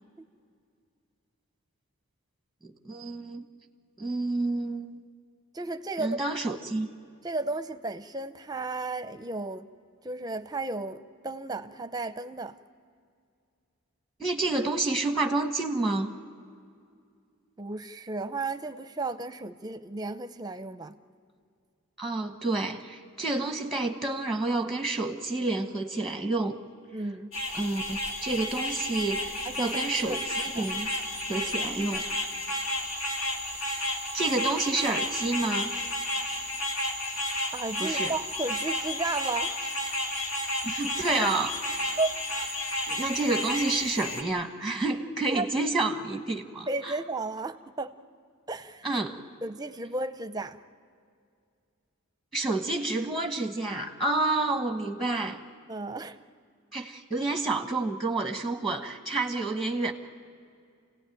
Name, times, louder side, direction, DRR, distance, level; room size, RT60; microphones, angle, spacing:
voice 1, 2.6-3.4 4.0-5.0 6.0-6.9 14.2-16.1 22.0-26.5 27.5-30.9 31.3-32.1 34.1-35.8 37.8-38.1 40.6-41.8 42.9-46.9 48.8-49.2 52.3-55.4 56.7-59.9, right 2 dB, ahead, 5 dB, 1.1 m, -29 dB
voice 2, 5.5-6.2 7.2-9.7 10.0-12.5 17.6-21.0 26.9-27.3 29.4-30.2 30.5-30.7 37.5-39.6 42.0-42.5 45.3-45.4 46.7-47.9 48.5-49.1 49.4-50.6 55.7-56.2, right 2 dB, 20° right, 10 dB, 0.7 m, -34 dB
sound 1, 27.3-44.2, left 1 dB, 65° left, 2.6 m, -32 dB
28.0 x 17.0 x 9.1 m, 2.3 s
head